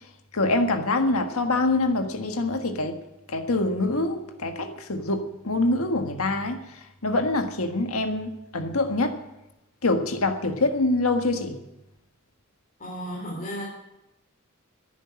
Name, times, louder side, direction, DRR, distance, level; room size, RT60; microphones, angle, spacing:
voice 1, 0.3-3.0 3.3-9.2 9.8-11.6, left 2 dB, 80° left, 5 dB, 1.6 m, -25 dB
voice 2, 12.8-13.7, equal, 40° left, -3 dB, 3.2 m, -33 dB
11.5 x 10.0 x 9.7 m, 0.92 s
head